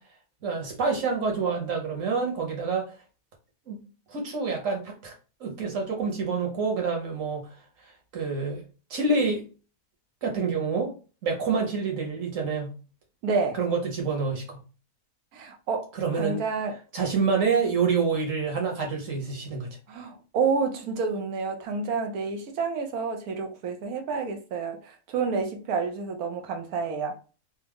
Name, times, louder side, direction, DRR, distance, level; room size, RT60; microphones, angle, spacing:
voice 1, 0.4-2.8 3.7-3.8 4.1-5.1 5.4-7.5 8.1-8.6 8.9-9.4 10.2-10.9 11.2-12.7 13.6-14.6 15.9-16.4 16.9-19.7, right 4 dB, 60° right, 1.4 m, -27 dB
voice 2, 13.2-13.6 15.3-16.7 19.9-27.2, right 5 dB, 80° right, 1.2 m, -29 dB
3.5 x 2.0 x 3.4 m
omnidirectional pair, 1.6 m